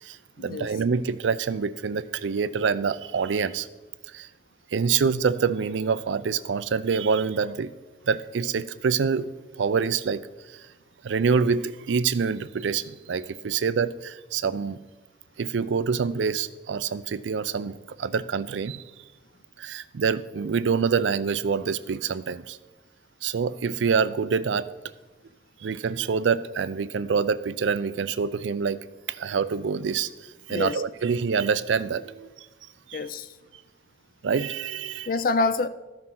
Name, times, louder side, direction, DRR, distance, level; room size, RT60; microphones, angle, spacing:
voice 1, 0.0-3.7 4.1-4.3 4.7-7.8 8.1-9.3 9.6-10.2 10.5-10.7 11.0-14.8 15.4-18.8 19.6-22.6 23.2-24.7 25.6-28.8 29.1-32.3 32.9-33.0 34.2-35.1, right 5 dB, 80° right, 0.4 m, -26 dB
voice 2, 30.5-30.8 32.9-33.3 35.1-35.7, left 3 dB, 50° left, 0.4 m, -26 dB
14.0 x 6.0 x 3.8 m
head